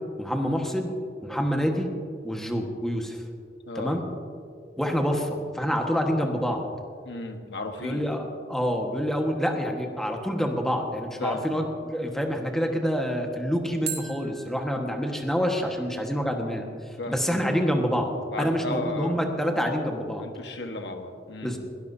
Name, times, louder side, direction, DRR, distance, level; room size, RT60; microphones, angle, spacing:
voice 1, 0.2-0.9 1.2-1.9 2.2-3.2 3.7-4.0 4.8-6.6 7.8-16.6 17.1-18.1 18.4-20.2 21.4-21.6, equal, 5° left, 2 dB, 1.4 m, -27 dB
voice 2, 3.7-4.0 7.0-8.1 11.2-11.5 17.0-17.2 18.3-19.2 20.2-21.6, left 2 dB, 65° left, 5 dB, 1.4 m, -34 dB
sound 1, 5.8-6.8 13.9-16.8, right 8 dB, 60° right, 2.2 m, -42 dB
21.0 x 17.5 x 2.7 m, 2.3 s
head